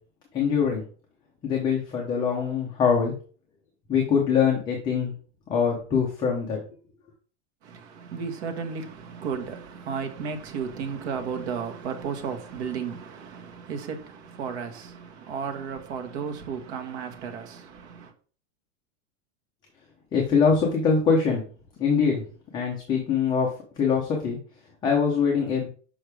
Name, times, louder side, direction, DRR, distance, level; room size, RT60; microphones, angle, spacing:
voice 1, 0.3-0.8 1.4-3.1 3.9-5.1 5.5-6.6 20.1-21.4 21.8-22.2 22.5-23.5 23.8-24.4 24.8-25.7, left 6 dB, 10° left, 0.6 m, -23 dB
voice 2, 7.6-18.1, right 6 dB, 60° right, 1.4 m, -34 dB
6.4 x 5.6 x 3.4 m
supercardioid pair, 175°, 37 cm